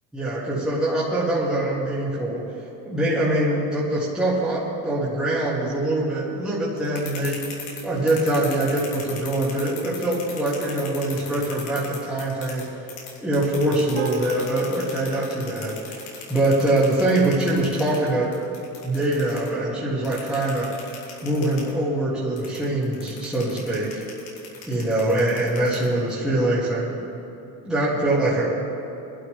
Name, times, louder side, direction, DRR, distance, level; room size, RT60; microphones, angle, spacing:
voice 1, 0.1-2.5 2.8-7.4 7.8-12.7 13.2-16.0 16.3-18.3 18.8-20.7 21.2-24.0 24.7-27.0 27.7-28.5, right 1 dB, ahead, -9 dB, 1.8 m, -23 dB
sound 1, 6.8-12.6 12.9-19.5 20.0-21.7 22.4-26.1, left 6 dB, 90° left, 3.2 m, -38 dB
sound 2, 14.0-18.5, right 6 dB, 65° right, 1.4 m, -40 dB
22.5 x 11.5 x 3.2 m, 2.8 s
cardioid pair, 170°, 35 cm